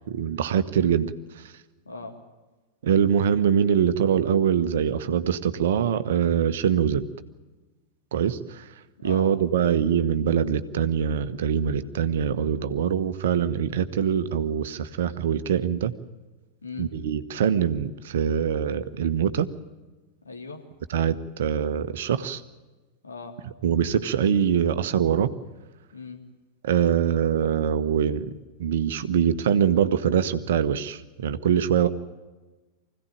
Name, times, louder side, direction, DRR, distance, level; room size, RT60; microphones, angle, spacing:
voice 1, 0.1-1.1 2.8-7.0 8.1-8.6 9.0-15.9 16.8-19.5 20.9-22.4 23.6-25.3 26.6-28.2 28.6-31.9, right 8 dB, 60° right, 13 dB, 1.2 m, -23 dB
voice 2, 1.8-2.2 9.0-9.3 16.6-16.9 20.2-20.6 23.0-23.4 25.9-26.2 31.7-31.9, left 4 dB, 75° left, 2 dB, 3.4 m, -38 dB
25.0 x 16.5 x 8.9 m, 1.2 s
figure-of-eight pair, 90°, 0 cm